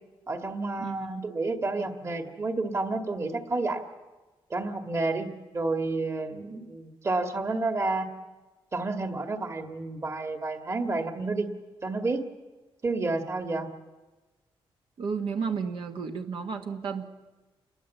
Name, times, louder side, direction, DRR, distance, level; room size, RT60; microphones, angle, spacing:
voice 1, 0.3-3.8 4.5-5.3 5.5-8.1 8.7-11.5 11.8-12.3 12.8-13.7, right 3 dB, 30° right, 6 dB, 1.9 m, -30 dB
voice 2, 0.8-1.3 1.7-1.9 15.0-17.0, right 5 dB, 65° right, 4 dB, 1.7 m, -32 dB
28.0 x 21.0 x 8.2 m, 1.2 s
wide cardioid pair, 130°, 10 cm